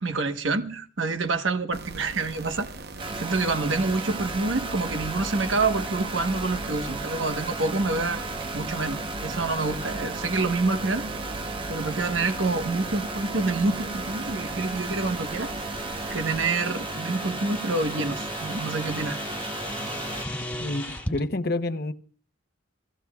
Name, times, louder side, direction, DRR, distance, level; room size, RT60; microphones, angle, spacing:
voice 1, 0.0-2.7 3.2-8.3 8.5-11.1 11.7-15.8 16.1-19.2, right 3 dB, 70° right, 1.2 m, -27 dB
sound 1, 1.7-16.5, right 2 dB, 50° right, 0.9 m, -40 dB
sound 2, 3.0-20.3, right 2 dB, 25° right, 0.9 m, -34 dB
sound 3, 12.4-21.2, left 1 dB, 5° left, 1.8 m, -39 dB
voice 2, 20.6-21.9, left 2 dB, 50° left, 0.8 m, -28 dB
29.5 x 16.5 x 2.4 m
head